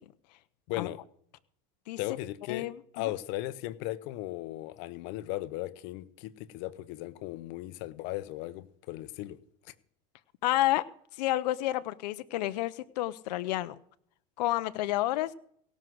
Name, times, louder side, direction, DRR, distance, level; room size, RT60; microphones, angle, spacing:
voice 1, 0.7-1.0 2.0-2.7 2.9-9.4, left 16 dB, 60° left, 15 dB, 1.0 m, -37 dB
voice 2, 2.5-3.1 10.4-10.9 11.2-13.8 14.4-15.3, left 16 dB, 80° left, 13 dB, 0.8 m, -30 dB
17.5 x 6.3 x 7.7 m, 0.64 s
supercardioid pair, 120°, 21 cm